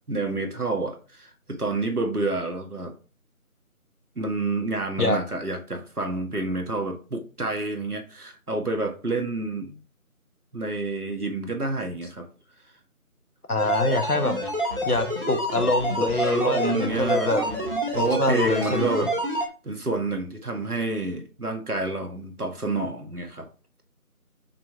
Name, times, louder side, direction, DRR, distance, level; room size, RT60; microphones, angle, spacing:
voice 1, 0.1-2.9 4.2-9.8 10.5-12.3 16.0-17.6 18.0-19.1 19.6-23.5, right 3 dB, 90° right, 1.9 m, -28 dB
voice 2, 13.5-14.3 14.8-17.4 17.9-18.8, left 2 dB, 85° left, 1.5 m, -25 dB
sound 1, 13.6-19.5, right 1 dB, 40° right, 1.5 m, -28 dB
6.0 x 4.2 x 4.6 m
figure-of-eight pair, 175°, 44 cm